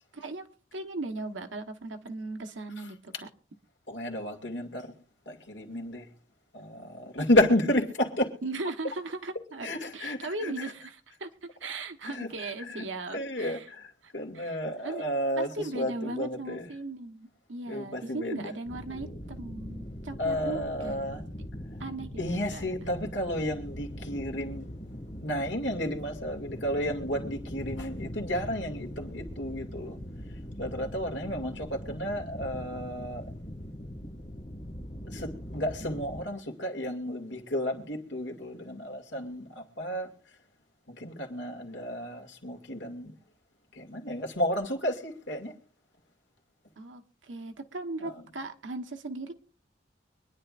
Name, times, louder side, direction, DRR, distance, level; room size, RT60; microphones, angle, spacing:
voice 1, 0.1-0.4 0.7-3.3 8.4-13.7 14.0-15.0 15.4-21.2 21.8-22.6 46.8-49.3, right 2 dB, 85° right, 1.3 m, -38 dB
voice 2, 3.9-4.9 5.3-6.1 6.5-8.3 9.6-10.7 12.0-12.9 13.1-16.7 17.7-18.5 18.9-19.2 20.2-21.2 22.2-24.7 25.2-30.0 30.6-33.2 35.1-40.1 40.9-43.1 43.7-45.5 48.0-48.3, left 1 dB, 75° left, 2.4 m, -32 dB
sound 1, 18.6-36.3, equal, 40° left, 1.9 m, -41 dB
24.5 x 10.0 x 2.5 m
head